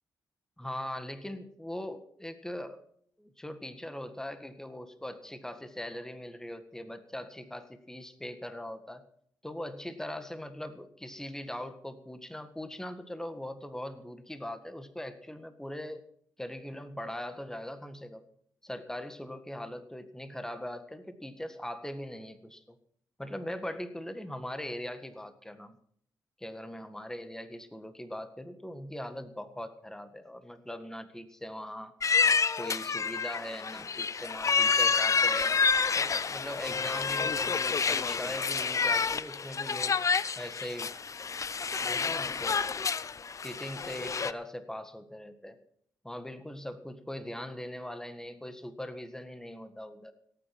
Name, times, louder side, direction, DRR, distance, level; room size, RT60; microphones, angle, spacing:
voice 1, 0.6-2.8 3.2-9.0 9.4-16.1 16.4-18.2 18.6-22.8 23.2-25.8 26.4-31.9 32.6-35.5 35.9-40.0 40.4-40.9 41.8-42.7 43.4-45.6 46.0-50.1, left 1 dB, 5° left, 9 dB, 1.7 m, -41 dB
sound 1, 32.0-44.3, left 5 dB, 45° left, 0.7 m, -29 dB
17.5 x 9.0 x 6.1 m, 0.64 s
cardioid pair, 65°, 8 cm